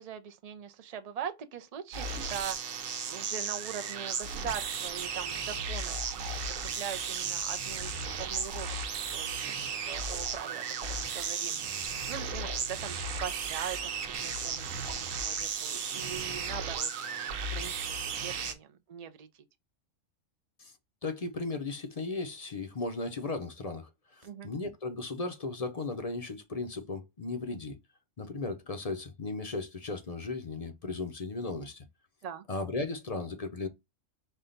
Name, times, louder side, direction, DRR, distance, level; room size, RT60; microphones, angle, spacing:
voice 1, 0.0-8.8 9.1-9.4 9.7-16.9 17.5-19.3 24.2-24.5 32.2-32.4, right 8 dB, 55° right, 0.4 m, -42 dB
sound 1, 1.9-18.5, right 5 dB, 85° right, 1.2 m, -35 dB
voice 2, 21.0-27.8 28.2-31.8 32.5-33.7, left 3 dB, 40° left, 0.6 m, -36 dB
5.4 x 2.2 x 3.8 m
omnidirectional pair, 1.3 m